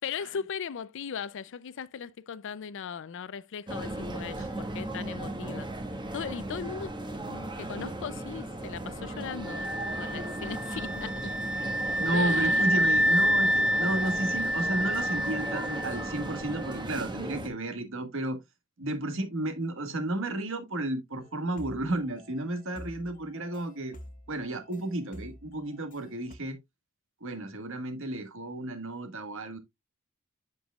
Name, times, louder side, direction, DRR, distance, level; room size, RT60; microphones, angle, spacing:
voice 1, 0.0-5.7 6.1-7.0 7.3-9.7 10.0-11.3 12.1-12.8, left 7 dB, 60° left, 0.5 m, -38 dB
sound 1, 3.7-17.5, right 1 dB, 20° right, 1.4 m, -37 dB
sound 2, 9.5-16.3, equal, 5° right, 0.5 m, -28 dB
voice 2, 12.0-18.4 18.8-24.0 24.3-26.6 27.2-29.6, right 2 dB, 65° right, 1.5 m, -32 dB
sound 3, 21.2-26.4, left 1 dB, 40° left, 0.9 m, -49 dB
8.0 x 6.8 x 2.3 m
head